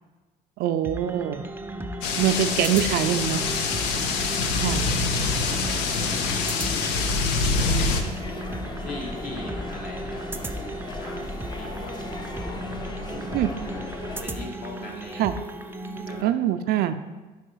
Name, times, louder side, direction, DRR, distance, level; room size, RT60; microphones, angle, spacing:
voice 1, 0.6-1.4 2.2-3.4 4.6-5.0 13.3-13.5 15.2-15.3 16.2-16.9, right 11 dB, 75° right, 10 dB, 0.4 m, -24 dB
sound 1, 0.8-16.2, right 1 dB, 15° right, 0.4 m, -35 dB
sound 2, 2.0-8.0, left 4 dB, 85° left, 0.6 m, -25 dB
voice 2, 2.3-3.0 4.0-6.2 6.5-7.8 8.8-10.6 10.9-12.3 12.8-13.5 14.2-15.3 15.9-16.3, left 2 dB, 60° left, -2 dB, 1.6 m, -41 dB
sound 3, 7.6-14.2, left 2 dB, 25° left, 0.6 m, -37 dB
4.7 x 4.6 x 4.5 m, 1.2 s
supercardioid pair, 85°, 16 cm